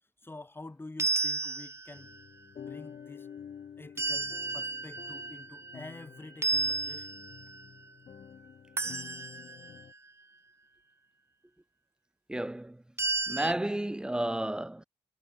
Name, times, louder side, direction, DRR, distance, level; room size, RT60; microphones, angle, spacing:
voice 1, 0.2-2.2 2.6-3.3 3.8-7.2, left 2 dB, 20° left, 7.2 m, -48 dB
sound 1, 1.0-2.2 4.0-6.0 6.4-7.6 8.8-9.8 13.0-13.5, right 3 dB, 20° right, 0.9 m, -33 dB
sound 2, 1.9-9.9, left 8 dB, 75° left, 4.9 m, -49 dB
voice 2, 12.3-12.8 13.3-14.8, right 1 dB, 5° right, 0.4 m, -32 dB
wide cardioid pair, 120°, 12 cm